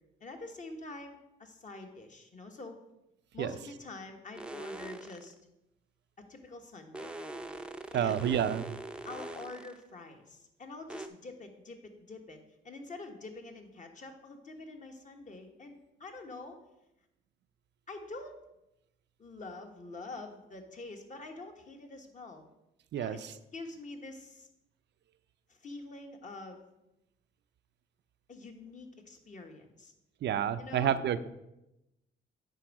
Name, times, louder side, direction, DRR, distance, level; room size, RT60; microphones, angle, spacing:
voice 1, 0.2-2.8 3.3-5.3 6.3-7.1 7.9-8.3 9.0-12.4 12.6-16.6 17.9-18.3 19.2-22.5 22.9-24.5 25.5-26.7 28.3-29.9 30.6-31.0, left 2 dB, 40° left, 4 dB, 1.4 m, -46 dB
sound 1, 4.4-5.3 6.9-9.8 10.9-11.1, right 2 dB, 5° right, 0.6 m, -42 dB
voice 2, 7.9-8.8 22.9-23.2 30.2-31.3, right 9 dB, 60° right, 13 dB, 0.5 m, -29 dB
9.0 x 5.3 x 4.8 m, 0.91 s
cardioid pair, 90°, 20 cm